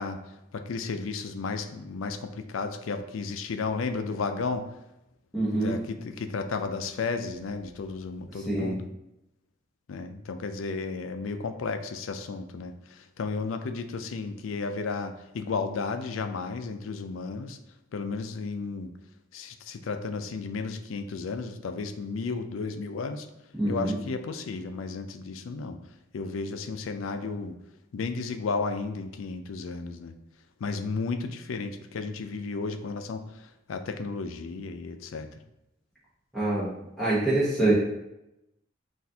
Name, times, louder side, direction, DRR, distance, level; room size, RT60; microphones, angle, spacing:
voice 1, 0.0-4.7 5.5-8.9 9.9-17.6 17.9-18.9 19.3-23.3 23.7-25.8 26.1-27.6 27.9-30.1 30.6-35.3, left 4 dB, 85° left, 8 dB, 0.4 m, -33 dB
voice 2, 5.3-5.7 8.5-8.7 23.6-23.9 36.3-36.7 37.0-37.7, right 2 dB, ahead, -11 dB, 1.0 m, -25 dB
6.0 x 2.5 x 2.7 m, 0.88 s
head